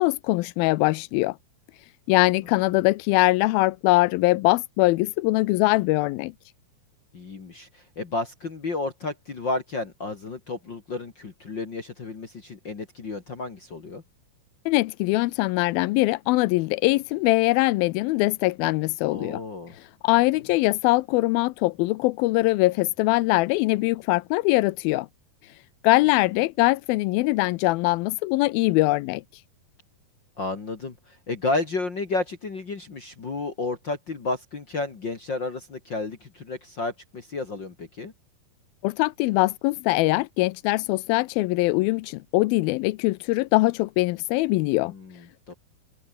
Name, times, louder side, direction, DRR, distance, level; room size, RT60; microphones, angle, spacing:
voice 1, 0.0-1.4 2.1-6.3 14.7-19.4 19.7-25.1 25.8-29.2 38.8-44.9, left 21 dB, 80° left, 2.3 m, -22 dB
voice 2, 7.1-14.0 19.1-19.7 30.4-38.1 44.8-45.5, left 3 dB, 35° left, 2.2 m, -32 dB
open air
omnidirectional pair, 4.5 m